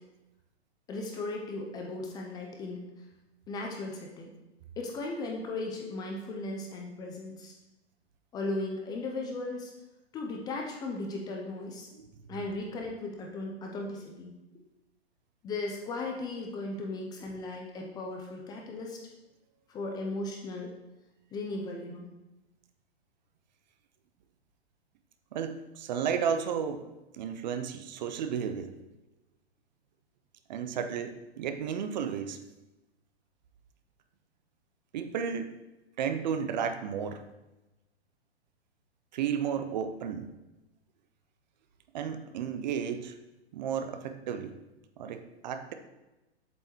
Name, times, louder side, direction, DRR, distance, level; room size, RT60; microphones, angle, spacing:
voice 1, 0.9-2.8 3.5-4.3 4.8-7.5 8.3-9.7 10.1-11.9 12.3-14.4 15.4-19.0 19.7-20.7 21.3-22.1, left 2 dB, 10° left, 1 dB, 0.5 m, -36 dB
voice 2, 25.3-26.9 27.1-28.7 30.5-32.4 34.9-35.5 36.0-37.2 39.1-40.3 41.9-43.1 43.5-44.5 45.0-45.7, right 7 dB, 45° right, 8 dB, 0.6 m, -33 dB
7.8 x 5.4 x 3.0 m, 1.0 s
hypercardioid pair, 125°, 32 cm